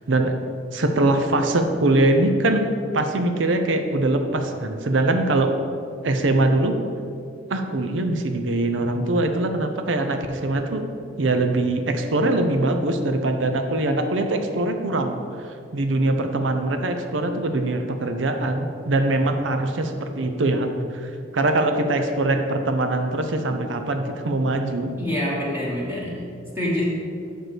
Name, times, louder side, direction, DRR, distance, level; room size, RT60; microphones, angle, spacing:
voice 1, 0.7-2.7 2.9-5.5 6.0-6.8 7.5-10.8 11.2-15.2 15.7-24.9, right 2 dB, 80° right, 6 dB, 0.6 m, -22 dB
voice 2, 25.0-26.2 26.5-26.8, left 1 dB, 10° right, -5 dB, 1.3 m, -26 dB
6.2 x 5.2 x 6.0 m, 2.4 s
head